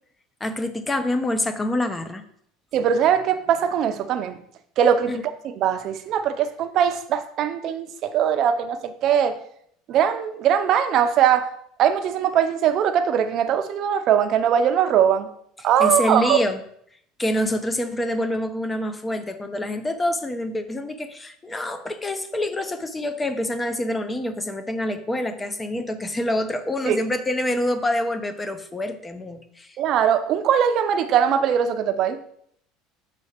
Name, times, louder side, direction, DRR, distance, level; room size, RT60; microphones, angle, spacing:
voice 1, 0.4-2.2 5.1-5.2 15.8-16.6 17.2-29.7, left 1 dB, 15° left, 9 dB, 0.6 m, -26 dB
voice 2, 2.7-4.4 4.8-9.4 9.9-11.5 11.8-15.3 15.6-16.4 26.9-27.0 29.8-32.2, right 8 dB, 45° right, 9 dB, 0.6 m, -21 dB
6.3 x 4.2 x 5.1 m, 0.67 s
cardioid pair, 140°, 0 cm